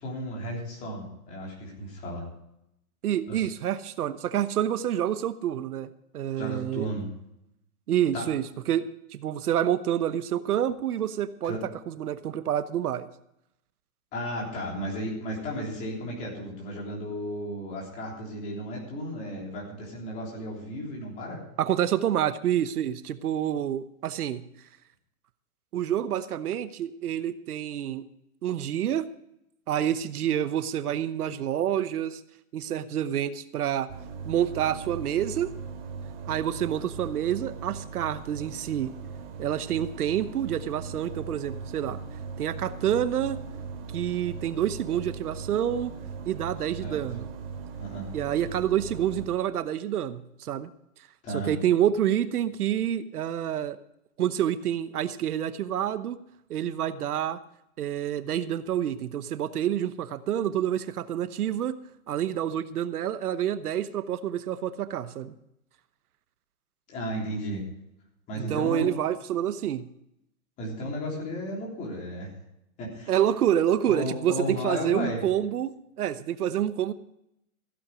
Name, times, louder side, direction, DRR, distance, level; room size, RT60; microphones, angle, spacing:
voice 1, 0.0-2.2 3.3-3.5 6.4-7.1 8.1-8.3 11.4-11.6 14.1-21.4 46.8-47.0 47.8-48.1 51.2-51.6 66.9-67.7 68.3-68.9 70.6-72.3 72.8-73.1 73.8-75.2, equal, 15° left, -2 dB, 3.4 m, -34 dB
voice 2, 3.0-5.9 6.1-6.9 7.9-11.6 11.9-13.1 21.6-24.4 25.7-28.0 28.4-29.1 29.7-32.2 32.5-33.9 34.2-35.5 36.3-38.9 39.4-42.0 42.4-43.4 43.9-45.9 46.2-47.3 48.1-50.7 51.5-53.8 54.2-56.2 56.5-57.4 57.8-61.7 62.1-65.3 68.4-69.9 73.1-75.7 76.0-76.9, right 10 dB, 85° right, 13 dB, 1.1 m, -28 dB
sound 1, 33.9-49.3, right 5 dB, 40° right, 2.7 m, -39 dB
15.5 x 8.7 x 5.0 m, 0.80 s
hypercardioid pair, 175°, 44 cm